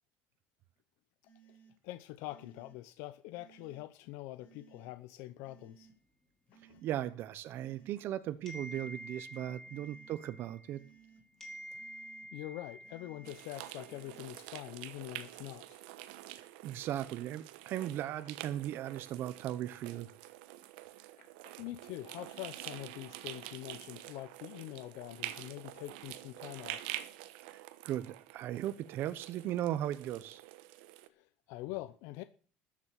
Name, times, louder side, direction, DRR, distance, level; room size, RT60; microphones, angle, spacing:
sound 1, 1.2-1.7 2.2-2.8 3.3-3.9 4.4-4.9 5.4-5.9 6.5-7.0 7.5-8.1 8.6-9.1 9.7-10.2 10.7-11.2 11.7-12.3 12.8-13.4 13.8-14.3, right 7 dB, 35° left, 5.0 m, -61 dB
voice 1, 1.8-5.9 6.7-6.8 9.4-9.6 12.3-15.8 21.2-27.0 31.1-32.2, left 17 dB, 70° left, 0.7 m, -45 dB
voice 2, 6.8-10.8 16.4-20.1 27.5-30.4, right 12 dB, 50° right, 0.9 m, -37 dB
sound 2, 8.5-11.1 11.4-14.0, right 1 dB, 10° left, 3.8 m, -49 dB
sound 3, 13.2-31.1, right 15 dB, 85° right, 1.1 m, -47 dB
13.5 x 7.5 x 7.5 m
cardioid pair, 130°, 5 cm